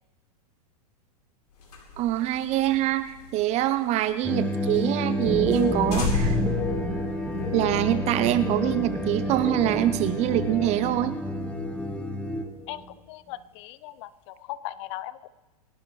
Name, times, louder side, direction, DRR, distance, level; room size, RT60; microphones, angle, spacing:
sound 1, 1.6-4.4 4.7-4.8 5.2-5.3 5.5-5.7 5.9-7.6, left 4 dB, 80° left, 4.1 m, -31 dB
voice 1, 2.0-6.4 7.5-11.2, right 14 dB, 35° right, 13 dB, 0.6 m, -24 dB
sound 2, 4.2-12.4, left 1 dB, 5° left, 1.1 m, -30 dB
sound 3, 5.1-11.0 11.3-12.0 12.3-12.7, left 1 dB, 10° right, 2.3 m, -33 dB
voice 2, 12.7-15.3, left 15 dB, 45° left, 17 dB, 0.6 m, -38 dB
27.5 x 12.0 x 3.2 m, 1.2 s
hypercardioid pair, 120°, 20 cm